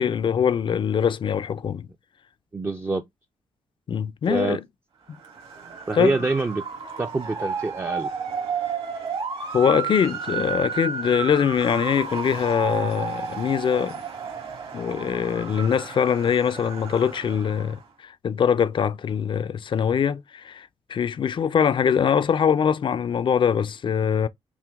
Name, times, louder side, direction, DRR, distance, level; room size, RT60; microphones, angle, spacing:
voice 1, 0.0-1.9 3.9-4.6 5.9-6.1 9.5-14.0 14.7-24.3, left 7 dB, 50° left, 0.4 m, -23 dB
voice 2, 2.5-3.0 4.3-4.6 5.9-6.6 7.0-8.1, right 3 dB, 20° right, 0.5 m, -25 dB
Motor vehicle (road) / Siren, 5.1-17.8, right 6 dB, 55° right, 1.7 m, -32 dB
5.9 x 2.2 x 3.5 m
cardioid pair, 90°, 11 cm